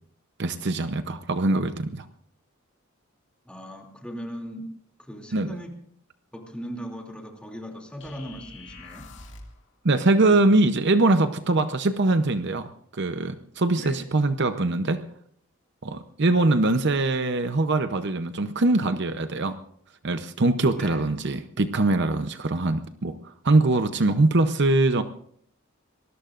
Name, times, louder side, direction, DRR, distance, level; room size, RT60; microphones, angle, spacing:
voice 1, 0.4-2.1 5.3-5.5 9.8-12.7 12.9-15.0 15.8-19.6 20.0-25.0, right 2 dB, 55° right, 9 dB, 0.8 m, -22 dB
voice 2, 3.5-4.7 5.0-5.8 6.3-9.1 13.8-14.1 20.7-21.1, equal, 5° left, 1 dB, 2.8 m, -38 dB
sound 1, 8.0-9.6, left 3 dB, 60° left, 2.4 m, -45 dB
25.5 x 20.0 x 2.5 m, 0.64 s
head